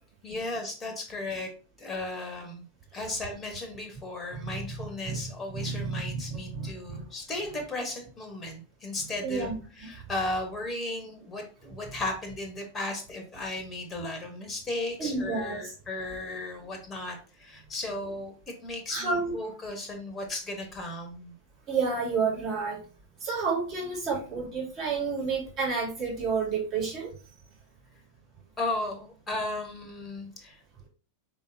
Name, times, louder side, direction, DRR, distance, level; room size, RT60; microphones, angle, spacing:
voice 1, 0.2-1.5 1.8-2.6 2.9-21.3 28.6-30.6, left 2 dB, 20° left, 4 dB, 1.2 m, -35 dB
voice 2, 5.5-7.0 9.2-9.5 9.8-9.9 15.0-15.7 18.9-19.3 21.7-22.8 23.2-27.1, right 4 dB, 35° right, -5 dB, 2.3 m, -30 dB
4.2 x 3.7 x 2.7 m, 0.36 s
figure-of-eight pair, 90°, 0 cm